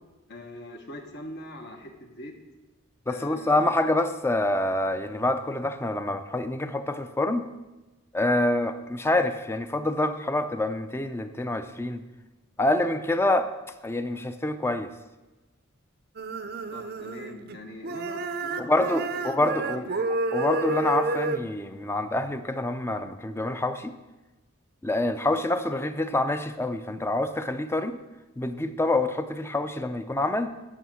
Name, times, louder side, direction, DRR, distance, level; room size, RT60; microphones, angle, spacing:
voice 1, 0.3-2.3 3.1-3.8 16.7-20.1, left 1 dB, 55° left, 3 dB, 1.2 m, -43 dB
voice 2, 3.1-7.5 8.1-12.0 12.6-13.5 13.8-14.9 18.6-19.9 20.3-24.0 24.8-28.0 28.4-30.5, left 2 dB, 10° left, 9 dB, 0.4 m, -26 dB
sound 1, 16.2-17.6 17.8-21.4, right 2 dB, 50° right, 0.5 m, -30 dB
9.8 x 5.7 x 6.2 m, 1.1 s
head